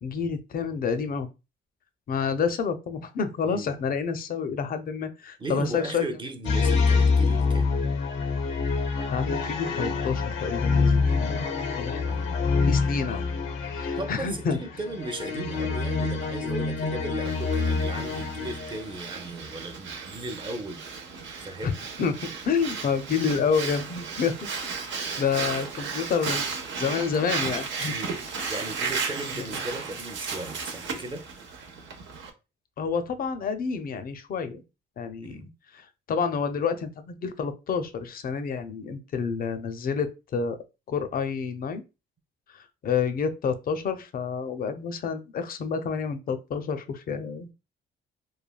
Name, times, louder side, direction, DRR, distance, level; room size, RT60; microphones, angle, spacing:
voice 1, 0.0-1.3 2.1-6.0 9.1-12.1 12.7-13.2 13.7-14.6 21.6-21.7 22.0-24.3 24.8-27.9 29.3-29.5 32.8-34.5 35.0-40.6 40.9-41.8 42.5-47.5, left 6 dB, 50° left, 0.5 m, -29 dB
voice 2, 5.4-7.7 12.1-12.5 14.0-20.8 21.4-21.8 27.9-28.2 28.5-31.3 35.2-35.5, right 2 dB, 25° right, 0.5 m, -36 dB
sound 1, 6.4-19.0, left 4 dB, 90° left, 0.6 m, -26 dB
Breathing, 17.2-32.3, right 5 dB, 70° right, 0.6 m, -34 dB
3.2 x 2.2 x 2.2 m
cardioid pair, 90°, 20 cm